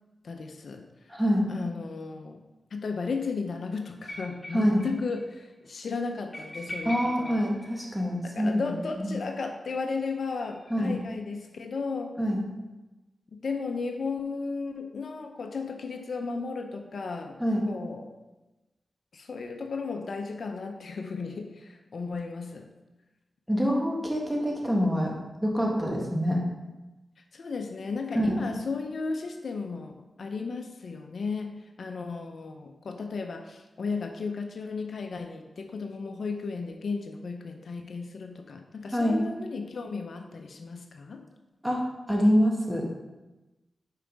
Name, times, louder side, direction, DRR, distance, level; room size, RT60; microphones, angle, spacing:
voice 1, 0.2-0.9 1.1-1.2 1.5-2.4 2.7-7.5 8.2-12.2 13.4-17.3 17.7-18.1 19.1-22.7 27.3-29.9 30.2-41.2, left 4 dB, 75° left, 5 dB, 0.6 m, -35 dB
voice 2, 1.1-1.5 4.5-4.8 6.8-8.7 9.0-9.1 10.7-11.0 12.2-12.4 17.4-17.7 23.5-25.1 25.4-26.4 28.1-28.4 38.9-39.2 41.6-41.8 42.1-42.9, equal, 5° right, -1 dB, 1.6 m, -25 dB
sound 1, 4.1-4.9 5.2-5.3 5.5-5.6 6.3-8.4 9.9-11.1, equal, 45° left, 1.4 m, -41 dB
5.7 x 4.8 x 5.0 m, 1.1 s
cardioid pair, 60°, 0 cm